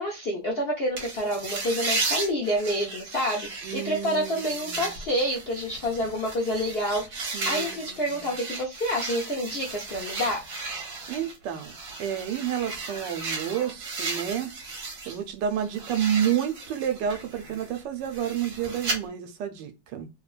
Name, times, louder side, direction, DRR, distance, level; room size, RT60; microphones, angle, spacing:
voice 1, 0.0-10.4, equal, 60° left, 0.6 m, -28 dB
sound 1, 1.0-15.2 15.5-19.0, right 3 dB, 55° right, 1.3 m, -35 dB
voice 2, 3.6-5.0 7.3-8.3 11.1-14.5 14.8-20.1, right 9 dB, 80° right, 1.3 m, -30 dB
3.3 x 2.2 x 2.4 m
omnidirectional pair, 1.9 m